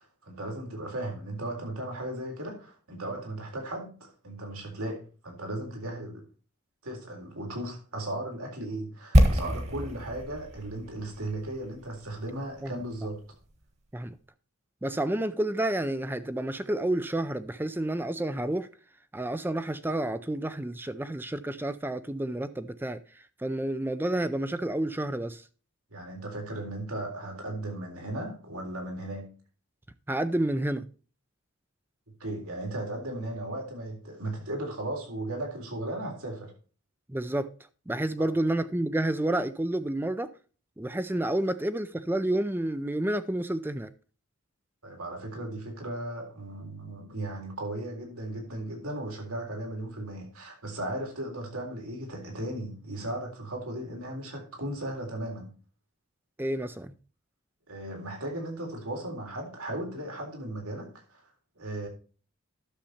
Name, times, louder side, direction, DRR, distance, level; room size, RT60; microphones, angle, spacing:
voice 1, 0.0-6.2 6.8-13.2 25.9-29.3 32.2-36.5 38.2-38.3 44.8-55.5 57.7-61.2 61.6-61.9, right 1 dB, 85° right, 3.8 m, -36 dB
sound 1, 9.1-13.1 13.3-13.5, equal, 30° right, 1.4 m, -26 dB
voice 2, 14.8-18.7 19.1-23.0 23.4-25.4 30.1-30.9 37.1-37.5 37.9-40.3 40.8-43.9 56.4-56.9, right 1 dB, 10° right, 0.4 m, -30 dB
11.5 x 6.8 x 4.3 m
head